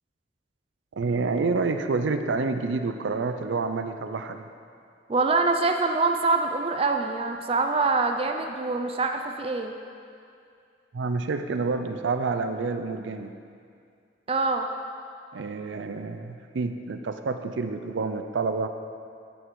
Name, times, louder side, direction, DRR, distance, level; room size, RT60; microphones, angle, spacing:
voice 1, 1.0-4.5 10.9-13.3 15.3-18.7, right 4 dB, 85° right, 8 dB, 0.5 m, -28 dB
voice 2, 5.1-9.7 14.3-14.7, right 3 dB, 30° right, 4 dB, 0.4 m, -25 dB
9.8 x 8.0 x 4.7 m, 2.4 s
head